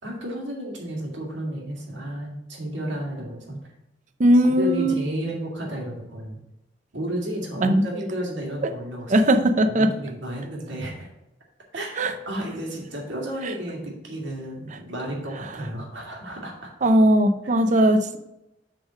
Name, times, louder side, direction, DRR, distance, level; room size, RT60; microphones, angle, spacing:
voice 1, 0.0-3.7 4.3-6.4 6.9-9.2 9.7-11.1 11.7-16.7 17.4-17.5, right 1 dB, 80° right, -1 dB, 2.1 m, -32 dB
voice 2, 4.2-5.0 7.6-7.8 9.1-9.9 12.0-12.1 16.8-18.2, right 1 dB, 45° right, 8 dB, 0.6 m, -18 dB
6.7 x 3.7 x 6.3 m, 0.88 s
head